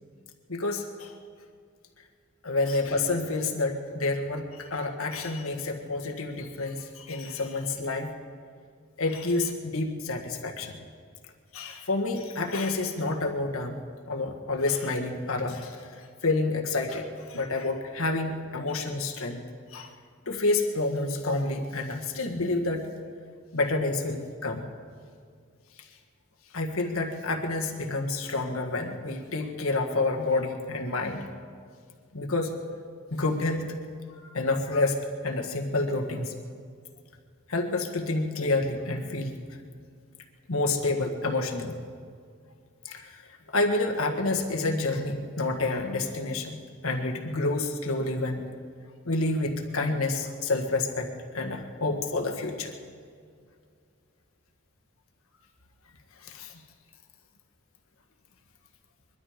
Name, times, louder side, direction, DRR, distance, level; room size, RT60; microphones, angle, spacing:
voice 1, 0.5-1.1 2.4-8.1 9.0-10.8 11.5-13.8 14.1-19.4 19.7-19.9 20.2-22.9 23.5-24.7 26.5-31.2 32.1-32.6 33.1-33.8 34.2-36.3 37.5-39.4 40.5-41.8 42.8-43.2 43.5-48.4 49.0-51.1 51.3-52.7 56.2-56.5, left 2 dB, 85° left, 3 dB, 1.6 m, -29 dB
22.5 x 12.5 x 5.1 m, 2.2 s
head